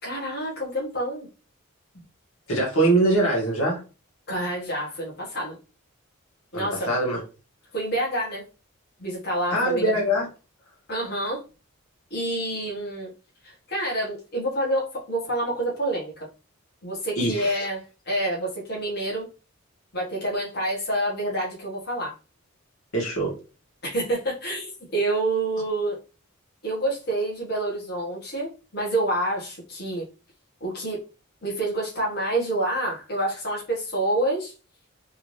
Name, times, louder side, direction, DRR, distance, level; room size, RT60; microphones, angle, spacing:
voice 1, 0.0-1.3 4.3-5.6 6.5-6.9 7.7-8.4 9.0-9.9 10.9-11.4 12.1-13.1 13.4-16.3 16.8-19.3 19.9-22.1 23.8-26.0 26.6-30.1 30.6-31.0 31.4-34.5, right 1 dB, 50° left, -5 dB, 1.5 m, -28 dB
voice 2, 2.5-3.8 6.5-7.2 9.5-10.3 17.2-17.7 22.9-23.3, right 1 dB, 80° left, -3 dB, 1.8 m, -23 dB
3.6 x 2.7 x 3.2 m, 0.34 s
head